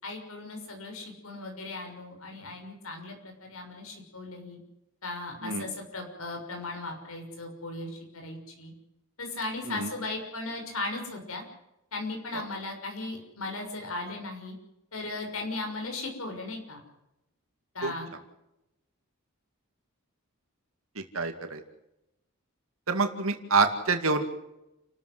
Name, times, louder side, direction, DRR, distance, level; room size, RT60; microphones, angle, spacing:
voice 1, 0.0-4.6 5.0-8.7 9.2-11.4 11.9-14.5 14.9-16.8 17.7-18.1, left 2 dB, 85° left, 3 dB, 6.3 m, -37 dB
voice 2, 21.0-21.6 22.9-24.2, right 4 dB, 75° right, 6 dB, 2.3 m, -27 dB
30.0 x 14.0 x 8.0 m, 0.89 s
head